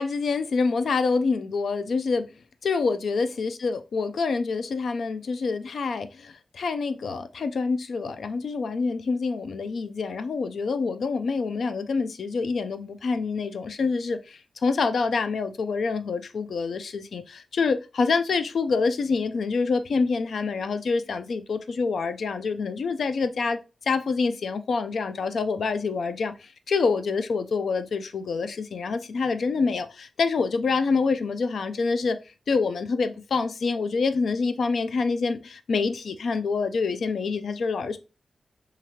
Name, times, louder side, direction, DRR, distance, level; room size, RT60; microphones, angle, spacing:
voice 1, 0.0-2.3 2.6-23.6 23.9-32.2 32.5-38.0, left 4 dB, 75° left, 0.3 m, -26 dB
3.0 x 2.4 x 2.8 m
cardioid pair, 75°, 0 cm